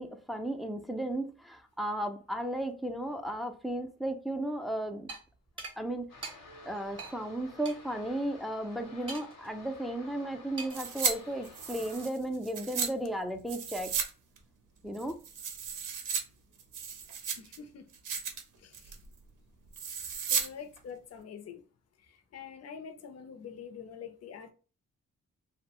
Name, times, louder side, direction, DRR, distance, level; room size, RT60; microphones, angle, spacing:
voice 1, 0.0-5.1 5.8-6.1 6.6-14.0 14.8-15.2, right 1 dB, ahead, 0.3 m, -35 dB
sound 1, 5.1-5.2 5.6-5.8 6.2-6.4 7.0-7.1 7.6-7.8 9.1-9.5 10.6-10.9, right 3 dB, 15° right, 0.7 m, -41 dB
sound 2, 6.1-12.1, left 3 dB, 85° left, 0.9 m, -52 dB
sound 3, 10.7-11.1 11.4-12.9 13.5-14.1 14.4-14.5 14.9-16.2 16.6-17.6 17.9-18.4 18.7-19.0 19.7-20.5 20.8-20.9, right 6 dB, 80° right, 0.6 m, -34 dB
voice 2, 17.4-17.9 18.6-19.0 20.3-21.6 22.0-24.5, left 7 dB, 55° left, 0.5 m, -46 dB
2.6 x 2.1 x 2.9 m
cardioid pair, 95°, 31 cm